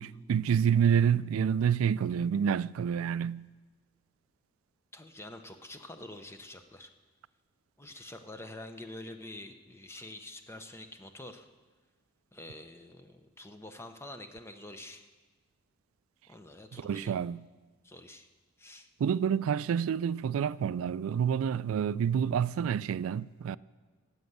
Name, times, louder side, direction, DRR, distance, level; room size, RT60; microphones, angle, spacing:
voice 1, 0.0-3.5 16.7-17.4 19.0-23.6, right 8 dB, 85° right, 0.3 m, -28 dB
voice 2, 4.9-6.9 7.8-11.5 12.3-15.1 16.3-17.1 17.8-18.3 18.6-18.9, left 1 dB, 10° left, 0.7 m, -47 dB
13.0 x 8.1 x 8.0 m
head